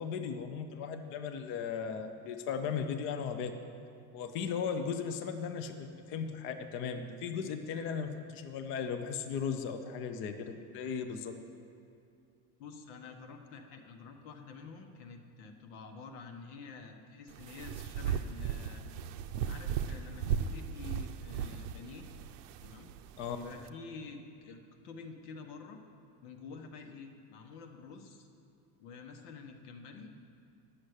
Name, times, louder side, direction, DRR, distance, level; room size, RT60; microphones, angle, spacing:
voice 1, 0.0-3.5 4.1-11.4 23.2-23.4, left 6 dB, 30° left, 7 dB, 0.4 m, -37 dB
voice 2, 12.6-18.8 19.4-22.0 22.6-22.9 23.3-25.8 26.2-28.3 28.8-30.2, left 4 dB, 80° left, 5 dB, 1.3 m, -48 dB
sound 1, 17.3-23.7, right 8 dB, 80° right, 0.6 m, -37 dB
9.9 x 6.4 x 8.0 m, 2.5 s
cardioid pair, 165°, 45 cm